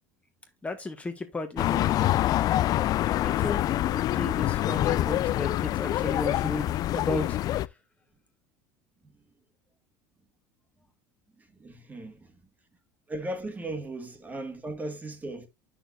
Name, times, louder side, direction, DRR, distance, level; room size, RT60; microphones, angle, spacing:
voice 1, 0.6-1.9 3.2-3.6 3.9-7.4, left 2 dB, 15° left, 1.4 m, -34 dB
sound 1, 1.6-7.7, left 14 dB, 45° left, 0.4 m, -26 dB
voice 2, 11.4-12.4 13.1-15.5, right 1 dB, 20° right, 1.6 m, -38 dB
8.9 x 6.3 x 2.5 m
supercardioid pair, 105°, 9 cm